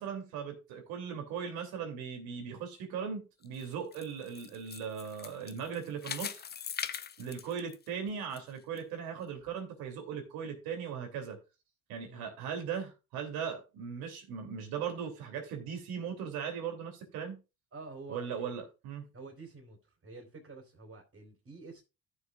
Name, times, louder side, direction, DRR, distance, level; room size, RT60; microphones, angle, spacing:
voice 1, 0.0-6.4 7.2-11.4 11.9-17.4 18.1-19.0, right 7 dB, 85° right, 2.9 m, -38 dB
sound 1, 3.4-8.4 8.8-8.9 9.5-9.6, left 8 dB, 30° left, 0.5 m, -41 dB
voice 2, 17.7-18.5 19.1-19.8 20.0-21.8, right 3 dB, 40° right, 3.5 m, -48 dB
14.5 x 6.5 x 2.4 m
supercardioid pair, 85°, 35 cm